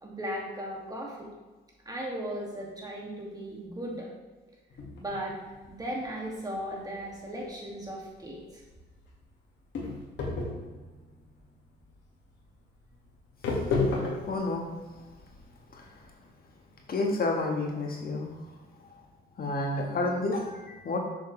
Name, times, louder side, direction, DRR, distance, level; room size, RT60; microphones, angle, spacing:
voice 1, 0.0-1.3 1.9-4.1 4.9-5.4 5.7-8.4, equal, 20° right, -2 dB, 2.3 m, -36 dB
sound 1, 4.7-16.1, left 3 dB, 65° left, 2.0 m, -35 dB
voice 2, 13.7-14.6 15.7-16.0 16.9-18.2 19.4-21.0, left 2 dB, 50° left, 0 dB, 1.7 m, -30 dB
7.4 x 6.4 x 3.3 m, 1.3 s
cardioid pair, 90°, 20 cm